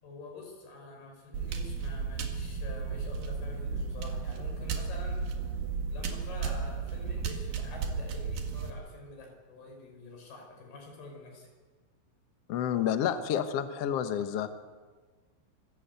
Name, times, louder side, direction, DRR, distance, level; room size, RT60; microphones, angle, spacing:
voice 1, 0.0-5.3 5.9-11.5, left 3 dB, 70° left, 1 dB, 7.0 m, -47 dB
sound 1, 1.3-8.7, right 5 dB, 60° right, 3.3 m, -34 dB
voice 2, 12.5-14.5, left 9 dB, 90° left, 8 dB, 1.3 m, -29 dB
25.5 x 13.5 x 8.3 m, 1.4 s
omnidirectional pair, 4.7 m